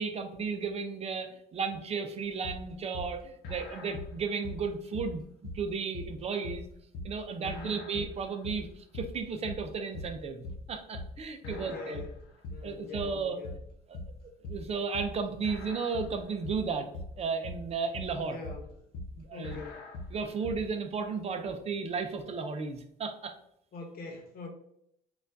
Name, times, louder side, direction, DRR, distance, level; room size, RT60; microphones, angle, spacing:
voice 1, 0.0-6.6 7.0-12.0 12.6-13.4 13.9-14.0 14.5-16.9 17.2-18.4 19.2-19.6 20.1-23.4, right 5 dB, 40° right, 7 dB, 0.4 m, -34 dB
sound 1, 2.4-20.7, left 2 dB, 85° left, 0.7 m, -42 dB
voice 2, 7.4-7.8 11.4-12.2 12.5-13.6 18.2-18.7 19.3-19.9 23.7-24.5, left 4 dB, 60° left, 2 dB, 0.9 m, -44 dB
4.3 x 2.4 x 2.6 m, 0.74 s
cardioid pair, 110°, 17 cm